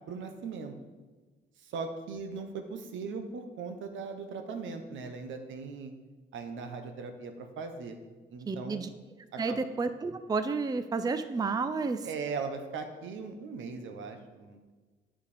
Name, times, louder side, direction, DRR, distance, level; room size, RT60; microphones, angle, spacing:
voice 1, 0.1-0.7 1.6-5.9 6.3-8.0 8.3-8.8 9.3-9.6 12.0-14.7, right 4 dB, 75° right, 6 dB, 1.1 m, -39 dB
voice 2, 8.5-8.9 9.4-12.1, right 4 dB, 20° right, 10 dB, 0.4 m, -31 dB
8.4 x 5.0 x 5.1 m, 1.3 s
cardioid pair, 90°, 20 cm